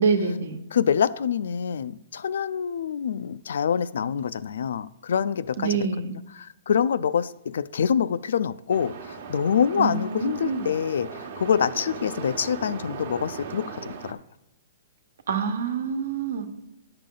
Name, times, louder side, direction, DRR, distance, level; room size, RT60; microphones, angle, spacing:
voice 1, 0.0-0.6 5.6-6.2 9.7-10.7 15.3-16.5, right 5 dB, 75° right, 7 dB, 1.2 m, -26 dB
voice 2, 0.7-14.2, left 7 dB, 75° left, 16 dB, 0.4 m, -26 dB
sound 1, 8.7-14.1, right 5 dB, 55° right, 1.0 m, -38 dB
10.5 x 6.7 x 3.8 m, 0.88 s
hypercardioid pair, 170°, 0 cm